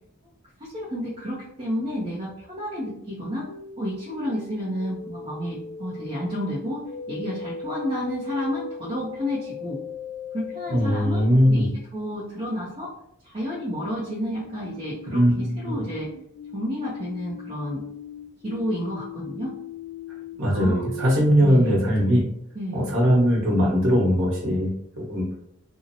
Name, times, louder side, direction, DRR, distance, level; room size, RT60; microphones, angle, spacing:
voice 1, 0.6-3.5 3.8-6.8 7.1-9.8 10.3-12.9 13.2-16.1 16.5-17.8 18.4-19.5 20.5-20.9 21.4-21.8 22.5-23.0, equal, 30° right, -6 dB, 0.5 m, -31 dB
sound 1, 3.5-10.9 14.2-21.1, left 4 dB, 75° left, 0.5 m, -38 dB
voice 2, 10.7-11.7 15.1-15.7 20.4-22.2 22.7-25.4, equal, 60° right, -4 dB, 1.0 m, -20 dB
2.7 x 2.0 x 2.6 m, 0.75 s
head